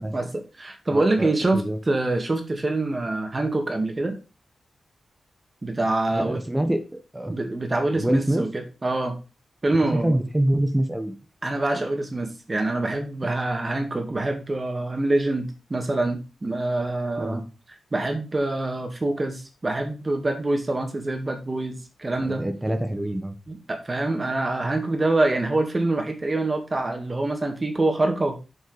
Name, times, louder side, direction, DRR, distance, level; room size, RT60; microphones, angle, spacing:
voice 1, 0.0-4.2 5.6-6.4 6.7-6.8 7.3-9.1 9.6-10.2 11.4-17.4 17.9-22.4 23.5-28.4, right 2 dB, 30° right, 4 dB, 2.1 m, -25 dB
voice 2, 0.9-1.8 6.1-6.8 7.1-7.3 7.9-8.4 9.7-11.1 17.2-17.4 22.2-23.3, right 1 dB, 10° right, 7 dB, 1.2 m, -25 dB
8.0 x 5.2 x 5.0 m, 0.31 s
wide cardioid pair, 95°, 0 cm